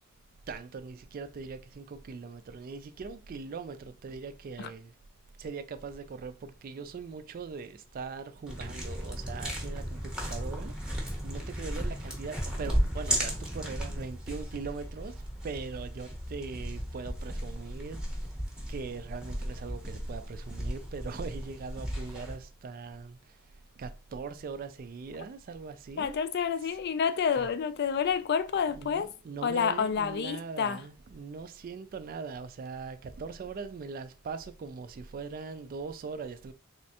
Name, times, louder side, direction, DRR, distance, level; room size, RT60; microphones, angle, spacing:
voice 1, 0.5-4.9 5.4-18.0 18.7-23.2 23.8-26.2 27.4-27.5 28.7-36.5, right 4 dB, 40° right, 0.3 m, -41 dB
sound 1, 8.5-22.3, equal, 5° right, 0.8 m, -35 dB
voice 2, 26.0-29.1 29.4-30.8, left 7 dB, 50° left, 0.4 m, -29 dB
3.4 x 3.1 x 2.8 m
head